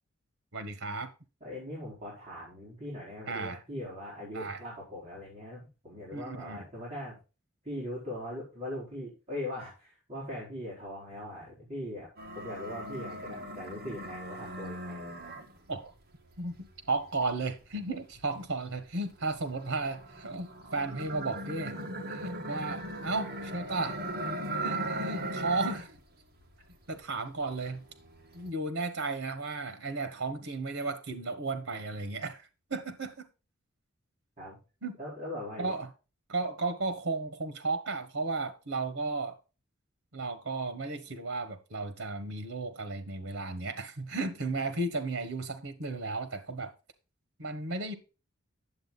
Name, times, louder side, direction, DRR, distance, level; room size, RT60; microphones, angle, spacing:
voice 1, 0.5-1.1 3.3-3.6 4.3-4.6 6.1-6.6 15.7-15.9 16.4-16.5 16.9-21.8 22.1-24.0 24.6-25.9 26.9-27.8 28.3-33.2 34.8-34.9 35.6-35.9 36.3-39.4 40.1-46.7 47.4-47.9, right 3 dB, 85° right, 1.4 m, -34 dB
voice 2, 1.4-7.1 7.6-12.1 12.3-15.4 34.4-34.6 35.0-35.7, left 1 dB, 30° right, 4.6 m, -40 dB
sound 1, 12.2-15.8 16.3-18.5 19.1-26.0 26.3-27.1 27.4-28.5, right 1 dB, 50° right, 1.7 m, -38 dB
10.5 x 7.4 x 3.9 m
head